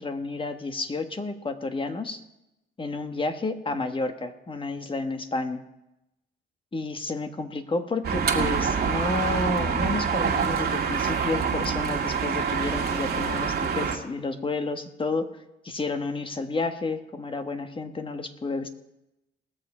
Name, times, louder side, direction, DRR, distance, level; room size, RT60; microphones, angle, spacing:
voice 1, 0.0-2.2 2.8-5.6 6.7-15.4 15.6-18.7, left 3 dB, 25° left, 7 dB, 1.3 m, -31 dB
sound 1, 8.0-14.0, right 6 dB, 55° right, 2.0 m, -26 dB
20.0 x 7.1 x 4.9 m, 0.89 s
cardioid pair, 90°, 20 cm